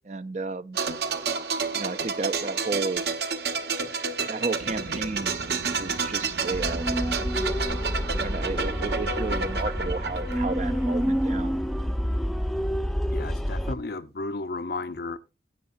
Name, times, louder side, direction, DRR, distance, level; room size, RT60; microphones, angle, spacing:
voice 1, 0.0-0.8 1.7-3.0 4.3-7.1 8.1-11.6, right 3 dB, 40° right, 0.6 m, -33 dB
sound 1, 0.7-11.4 11.6-11.8, right 5 dB, 65° right, 1.3 m, -30 dB
sound 2, 4.6-10.0, right 3 dB, 85° right, 0.7 m, -42 dB
sound 3, 6.5-13.7, equal, ahead, 0.6 m, -28 dB
voice 2, 13.1-15.2, left 3 dB, 60° left, 0.7 m, -33 dB
16.5 x 8.7 x 2.6 m
head